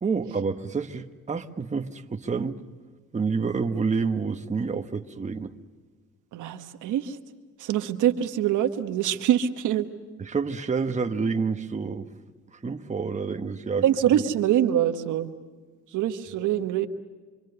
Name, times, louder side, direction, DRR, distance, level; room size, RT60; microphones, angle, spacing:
voice 1, 0.0-2.6 3.1-5.5 10.2-12.1 12.5-13.8, right 5 dB, 25° right, 1.2 m, -28 dB
voice 2, 6.3-7.2 7.6-9.9 13.8-15.3 15.9-16.9, right 11 dB, 85° right, 1.3 m, -24 dB
26.0 x 25.5 x 6.8 m
cardioid pair, 90°, 30 cm